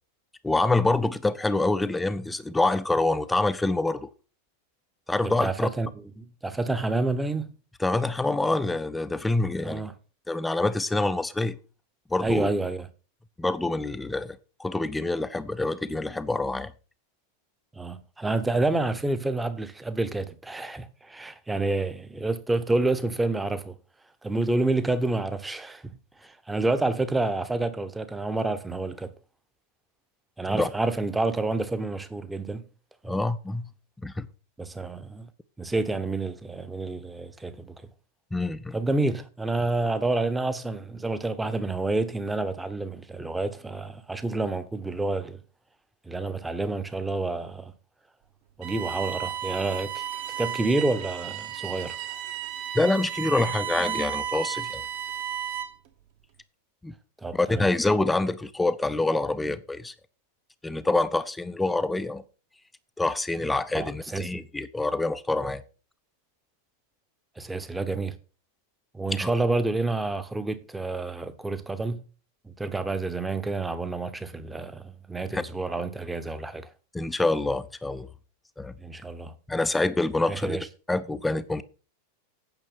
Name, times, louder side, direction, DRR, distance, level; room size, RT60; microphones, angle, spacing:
voice 1, 0.4-4.1 5.1-5.7 7.8-9.8 10.3-11.6 12.1-12.5 13.4-16.7 30.5-30.7 33.1-33.7 34.0-34.3 38.3-38.8 52.7-54.8 56.8-56.9 57.3-59.9 60.6-62.2 63.0-65.6 69.2-69.3 75.3-75.4 76.9-78.1 78.6-78.7 79.5-80.6 80.9-81.6, left 2 dB, 5° left, 0.6 m, -26 dB
voice 2, 5.2-5.9 6.2-7.5 9.6-9.9 12.2-12.9 17.7-23.8 24.2-25.9 26.2-29.1 30.4-32.6 33.0-33.2 34.6-35.3 35.6-37.8 38.7-45.4 46.1-47.7 48.6-50.0 50.4-52.0 57.2-57.7 63.7-64.5 67.4-68.1 68.9-72.0 72.4-76.7 78.8-79.3 80.3-80.7, right 2 dB, 10° right, 1.0 m, -28 dB
Bowed string instrument, 48.6-55.9, right 10 dB, 50° right, 1.5 m, -33 dB
9.1 x 6.4 x 5.9 m
figure-of-eight pair, 90°, 0 cm